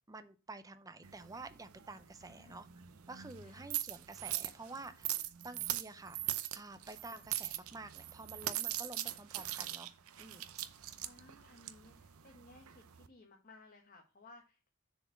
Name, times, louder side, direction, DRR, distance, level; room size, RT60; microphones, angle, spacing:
voice 1, 0.0-2.7 3.1-5.1 5.4-9.9 10.2-10.4, right 3 dB, 15° right, 11 dB, 0.6 m, -50 dB
sound 1, 1.0-13.1, right 13 dB, 75° right, 0.6 m, -41 dB
voice 2, 2.2-2.7 3.4-3.7 11.0-14.7, left 2 dB, 40° left, 1 dB, 1.1 m, -59 dB
7.0 x 4.3 x 5.7 m, 0.32 s
head